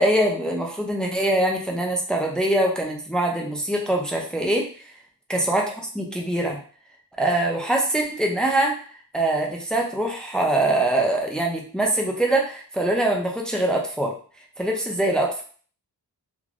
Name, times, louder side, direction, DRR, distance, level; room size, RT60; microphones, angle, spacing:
voice 1, 0.0-4.7 5.3-5.6 5.9-6.6 7.2-8.8 9.1-14.1 14.6-15.4, right 1 dB, ahead, 0 dB, 0.5 m, -23 dB
3.2 x 2.1 x 2.5 m, 0.43 s
wide cardioid pair, 80°, 42 cm